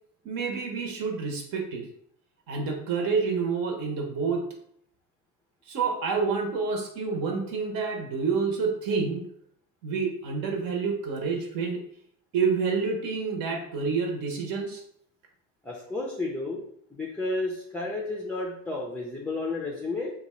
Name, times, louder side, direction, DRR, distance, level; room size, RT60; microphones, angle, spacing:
voice 1, 0.2-1.9 2.5-4.4 5.7-9.2 9.8-11.8 12.3-14.8, right 5 dB, 65° right, 2 dB, 0.9 m, -28 dB
voice 2, 15.6-16.6 16.9-20.1, left 2 dB, 5° left, -1 dB, 0.4 m, -32 dB
2.8 x 2.3 x 4.2 m, 0.68 s
cardioid pair, 125°, 36 cm